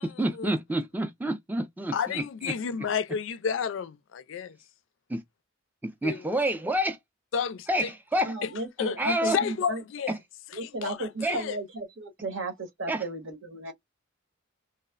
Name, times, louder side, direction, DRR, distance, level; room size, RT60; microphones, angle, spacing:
voice 1, 0.0-2.5 5.1-5.2 5.8-7.0 7.7-8.3 9.0-9.4 10.1-10.2 11.2-11.4 12.9-13.0, right 1 dB, 10° right, 0.4 m, -28 dB
voice 2, 1.9-4.6 6.0-6.2 7.3-7.9 8.4-8.5 8.8-9.0 9.3-10.1 10.6-11.6, left 6 dB, 65° left, 0.3 m, -31 dB
voice 3, 8.3-9.8 10.5-13.7, right 2 dB, 70° right, 1.0 m, -34 dB
3.1 x 2.0 x 2.3 m
head